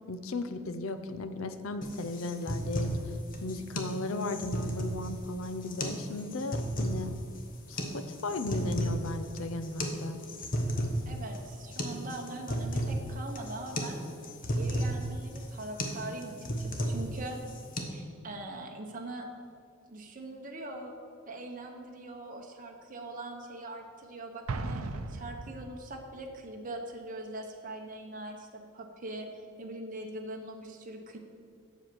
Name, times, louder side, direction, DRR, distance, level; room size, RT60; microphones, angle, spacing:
voice 1, 0.1-2.9 3.4-7.2 7.7-10.2, left 2 dB, 70° left, 10 dB, 0.6 m, -36 dB
sound 1, 1.8-17.8, equal, 40° left, 1.0 m, -34 dB
voice 2, 11.1-14.0 14.5-17.4 17.9-19.3 19.9-20.9 21.2-29.3 29.6-31.2, right 2 dB, 40° right, 2 dB, 1.0 m, -42 dB
Explosion, 24.5-26.1, right 3 dB, 85° right, 0.6 m, -37 dB
7.8 x 7.0 x 6.1 m, 2.3 s
head